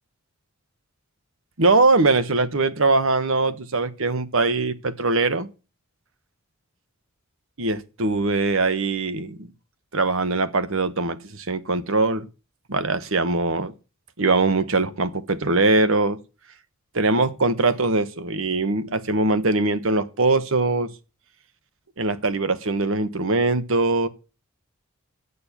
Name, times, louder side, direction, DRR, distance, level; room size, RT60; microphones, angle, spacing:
voice 1, 1.6-5.5 7.6-9.5 9.9-12.3 12.7-13.7 14.2-16.2 16.9-20.9 22.0-24.1, right 3 dB, 65° right, 1.2 m, -22 dB
8.6 x 6.9 x 8.5 m
head